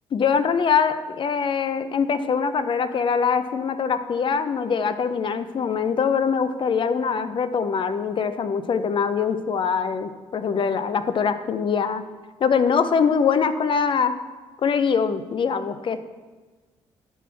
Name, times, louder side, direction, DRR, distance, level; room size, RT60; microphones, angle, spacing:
voice 1, 0.1-12.0 12.4-14.2 14.6-16.0, left 6 dB, 50° left, 12 dB, 0.5 m, -23 dB
10.0 x 4.1 x 4.5 m, 1.3 s
cardioid pair, 80°, 11 cm